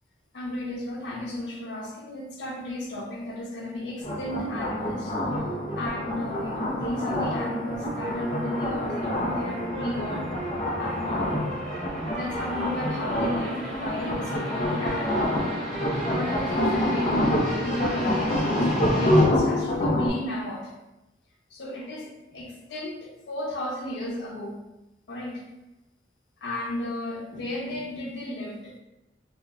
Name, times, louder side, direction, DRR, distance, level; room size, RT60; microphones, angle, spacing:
voice 1, 0.3-5.2 5.7-10.3 10.7-11.5 12.1-15.4 16.1-20.7 21.5-24.6 25.1-25.5 26.4-28.8, left 1 dB, 85° left, -1 dB, 0.5 m, -34 dB
sound 1, 4.0-20.1, left 1 dB, 35° left, 0.4 m, -27 dB
sound 2, 4.0-19.2, right 2 dB, 5° left, 1.0 m, -35 dB
2.8 x 2.3 x 2.2 m, 0.96 s
head